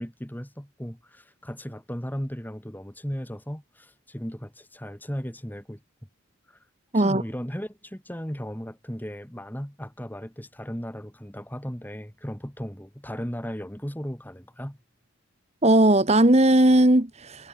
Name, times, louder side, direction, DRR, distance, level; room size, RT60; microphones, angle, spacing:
voice 1, 0.0-5.8 6.5-6.6 6.9-14.8, equal, 10° left, 2.4 m, -36 dB
voice 2, 15.6-17.5, right 1 dB, 30° right, 1.5 m, -18 dB
head